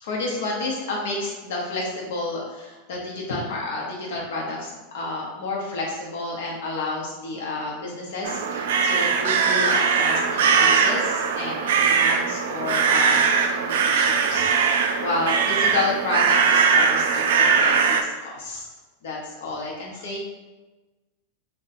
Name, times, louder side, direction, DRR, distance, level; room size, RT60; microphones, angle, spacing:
voice 1, 0.0-18.7 19.0-20.2, left 2 dB, 75° left, -3 dB, 0.7 m, -30 dB
sound 1, 8.2-18.0, right 6 dB, 80° right, 0.3 m, -20 dB
2.6 x 2.2 x 4.0 m, 1.2 s
supercardioid pair, 145°, 0 cm